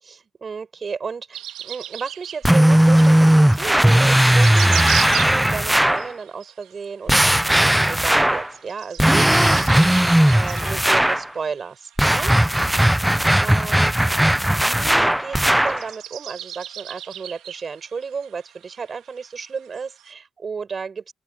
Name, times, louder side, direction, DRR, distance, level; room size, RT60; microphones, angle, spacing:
voice 1, 0.0-12.3 13.4-13.9 14.4-21.1, right 5 dB, 40° right, 7.2 m, -33 dB
sound 1, 1.3-20.1, right 12 dB, 85° right, 2.5 m, -37 dB
sound 2, 2.4-6.1 7.1-8.5 9.0-11.3 12.0-15.8, right 1 dB, 5° right, 0.8 m, -17 dB
open air
cardioid pair, 90°, 0 cm